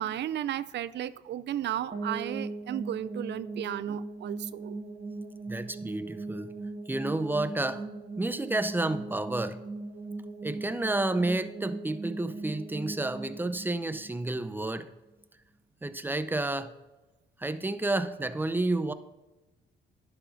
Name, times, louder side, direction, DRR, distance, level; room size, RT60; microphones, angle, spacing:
voice 1, 0.0-4.8, right 11 dB, 60° right, 17 dB, 0.5 m, -34 dB
sound 1, 1.9-14.8, right 3 dB, 35° right, 1.6 m, -39 dB
voice 2, 5.5-6.5 6.9-7.8 8.2-9.6 10.4-14.9 15.8-16.7 17.4-18.9, right 2 dB, 10° right, 11 dB, 0.6 m, -30 dB
11.0 x 7.0 x 4.0 m, 1.1 s
cardioid pair, 90°, 20 cm